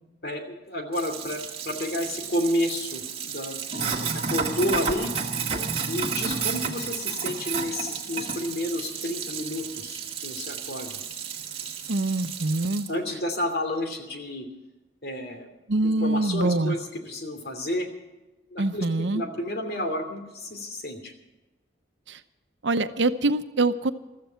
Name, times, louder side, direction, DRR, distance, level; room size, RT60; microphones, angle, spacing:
voice 1, 0.2-5.1 5.9-10.9 12.9-14.5 15.0-15.5 15.8-17.9 18.5-21.1, left 1 dB, 60° left, 6 dB, 2.8 m, -31 dB
Sink (filling or washing), 0.9-12.9, right 6 dB, 30° right, 1.8 m, -32 dB
voice 2, 11.9-12.8 15.7-16.8 18.6-19.2 22.1-22.2 22.6-23.9, right 2 dB, 90° right, 11 dB, 0.8 m, -24 dB
15.5 x 13.5 x 5.7 m, 1.1 s
head